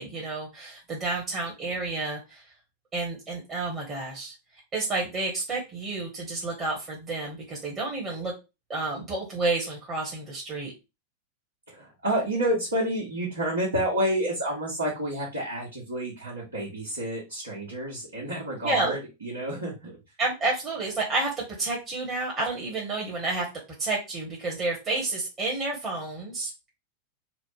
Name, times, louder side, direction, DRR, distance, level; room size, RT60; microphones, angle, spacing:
voice 1, 0.0-2.4 2.9-4.3 4.7-8.3 8.7-10.7 18.6-19.0 20.2-23.5 23.8-26.5, right 2 dB, 25° right, -3 dB, 1.1 m, -30 dB
voice 2, 11.7-19.9, right 1 dB, 75° right, -6 dB, 1.3 m, -29 dB
4.1 x 2.0 x 3.2 m, 0.26 s
figure-of-eight pair, 90°, 0 cm